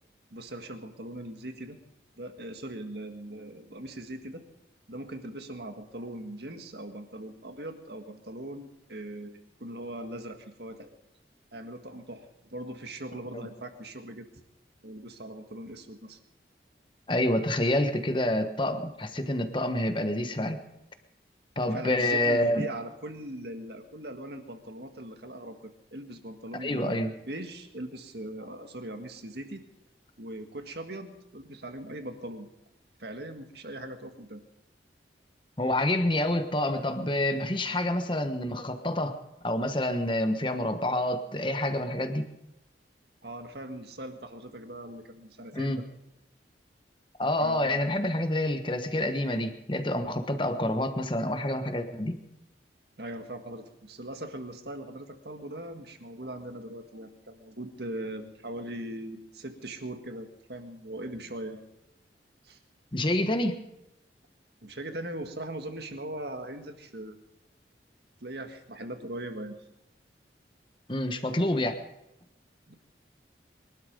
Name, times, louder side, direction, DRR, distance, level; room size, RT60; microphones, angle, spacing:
voice 1, 0.3-1.8 2.2-4.4 4.9-10.9 11.5-14.3 14.8-16.2 21.6-29.6 30.2-32.5 33.0-34.4 43.2-45.8 47.4-47.9 53.0-61.6 62.4-62.6 64.6-67.2 68.2-69.6 72.7-72.8, right 1 dB, 65° right, 6 dB, 1.8 m, -40 dB
voice 2, 17.1-20.6 21.6-22.7 26.5-27.1 35.6-39.2 39.4-42.3 45.5-45.8 47.2-52.2 62.9-63.6 70.9-71.7, left 1 dB, 25° left, 8 dB, 1.3 m, -27 dB
22.5 x 12.0 x 5.3 m, 0.86 s
head